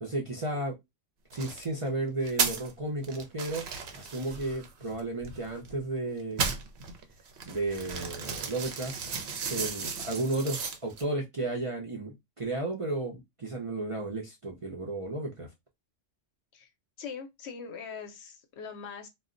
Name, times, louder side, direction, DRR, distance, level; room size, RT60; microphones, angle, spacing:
voice 1, 0.0-0.8 1.3-3.7 3.9-6.5 7.5-15.5, right 2 dB, 40° right, 0.5 m, -33 dB
sound 1, 1.3-1.6 2.2-2.7 3.0-5.8 6.2-11.0, right 5 dB, 65° right, 0.8 m, -35 dB
voice 2, 17.0-19.1, left 6 dB, 70° left, 0.8 m, -41 dB
2.3 x 2.1 x 3.7 m
omnidirectional pair, 1.3 m